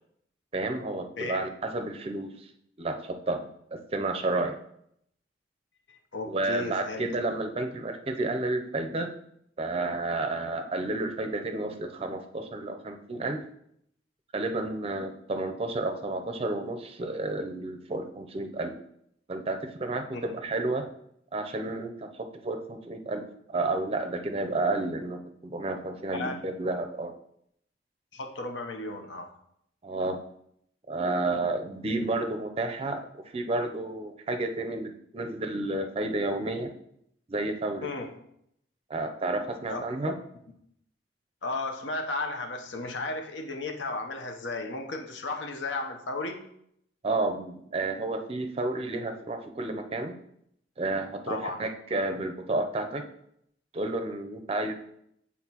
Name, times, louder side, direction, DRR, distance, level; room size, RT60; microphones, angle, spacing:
voice 1, 0.5-2.5 2.8-4.5 6.3-9.1 9.6-13.4 14.3-18.8 19.3-20.9 21.3-27.1 29.8-30.2 30.9-36.7 37.3-37.9 38.9-40.1 47.0-50.2 50.8-53.0 53.7-54.7, right 2 dB, 35° right, 6 dB, 0.5 m, -31 dB
voice 2, 6.1-7.1 20.1-20.2 26.1-26.3 28.1-29.3 37.8-38.1 39.7-39.8 41.4-46.4 51.3-51.6, left 2 dB, 80° left, 5 dB, 0.7 m, -34 dB
8.0 x 4.1 x 2.9 m, 0.74 s
head